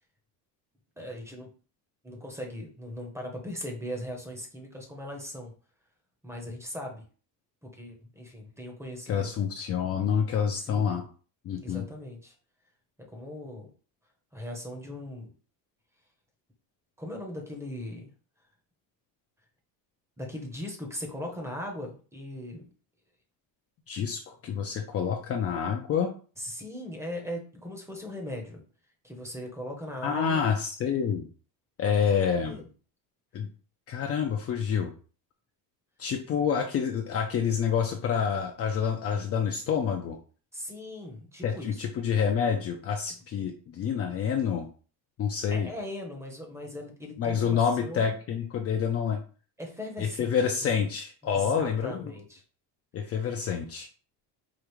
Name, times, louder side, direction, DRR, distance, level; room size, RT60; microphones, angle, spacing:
voice 1, 1.0-1.5 2.0-5.5 6.2-7.0 7.6-9.3 10.5-11.0 11.6-12.3 13.0-13.7 14.3-15.3 17.0-18.1 20.2-22.7 26.4-28.6 29.0-30.5 32.0-32.2 32.4-32.7 40.5-41.9 43.1-43.2 45.5-48.2 49.6-50.7 51.2-52.4 53.0-53.3, left 1 dB, 5° right, 1 dB, 0.7 m, -39 dB
voice 2, 9.1-11.0 11.4-11.9 23.9-26.1 30.0-31.3 31.8-32.6 33.3-33.5 33.9-34.9 36.0-40.2 41.4-44.7 45.2-45.7 47.2-49.2 50.0-52.1 52.9-53.9, left 7 dB, 35° left, 3 dB, 0.4 m, -28 dB
4.9 x 2.4 x 3.0 m, 0.38 s
cardioid pair, 155°, 40 cm